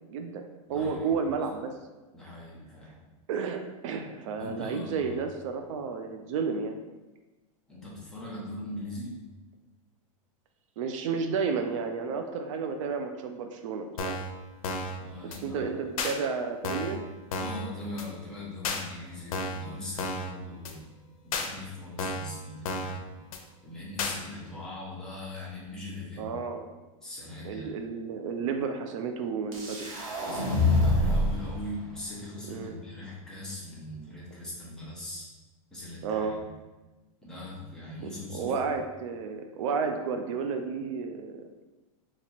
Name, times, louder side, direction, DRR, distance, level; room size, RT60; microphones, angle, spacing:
voice 1, 0.1-0.4 0.7-1.7 3.3-6.8 10.8-14.2 15.2-17.0 26.2-26.7 27.4-29.9 32.5-32.7 36.0-36.4 38.0-41.5, right 5 dB, 65° right, 6 dB, 0.4 m, -32 dB
voice 2, 0.7-1.3 2.1-3.0 4.3-5.2 7.7-9.1 15.0-15.6 17.3-20.9 21.2-23.1 23.6-26.3 27.0-27.7 30.2-35.3 35.7-36.5 37.2-38.7, left 2 dB, 5° left, -7 dB, 0.8 m, -40 dB
sound 1, 14.0-14.3 14.6-15.0 15.3-15.4 16.0-16.1 16.6-17.0 17.3-17.6 18.0-18.1 18.6-18.8 19.3-19.6 20.0-20.3 20.6-20.7 21.3-21.5 22.0-22.3 22.6-23.0 23.3-23.4 24.0-24.2, left 3 dB, 85° left, 0.6 m, -32 dB
sound 2, 29.5-31.5, left 2 dB, 80° right, 1.2 m, -25 dB
2.9 x 2.8 x 4.2 m, 1.2 s
supercardioid pair, 160°, 18 cm